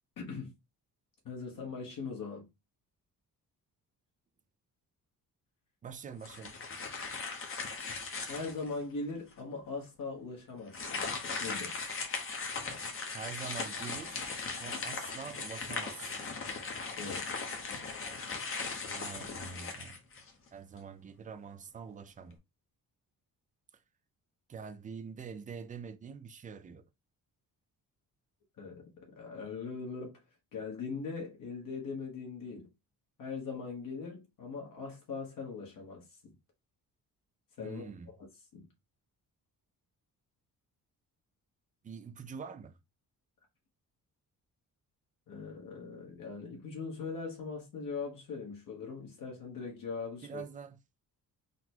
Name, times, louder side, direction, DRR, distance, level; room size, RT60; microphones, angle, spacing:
voice 1, 0.2-0.5 1.2-2.4 8.3-11.1 11.4-11.8 17.0-17.4 28.6-28.9 29.1-30.1 30.5-32.7 33.2-36.3 37.6-37.8 38.5-38.7 45.3-50.4, left 4 dB, 60° left, 1.4 m, -40 dB
voice 2, 5.8-6.5 13.1-14.3 14.6-16.3 18.9-20.0 20.5-22.4 24.5-26.8 37.6-38.1 41.8-42.8 50.2-50.8, right 6 dB, 25° right, 0.3 m, -45 dB
sound 1, 6.2-8.8 9.3-9.4 10.7-20.5, left 4 dB, 35° left, 0.9 m, -38 dB
4.0 x 2.2 x 4.4 m
wide cardioid pair, 150°, 36 cm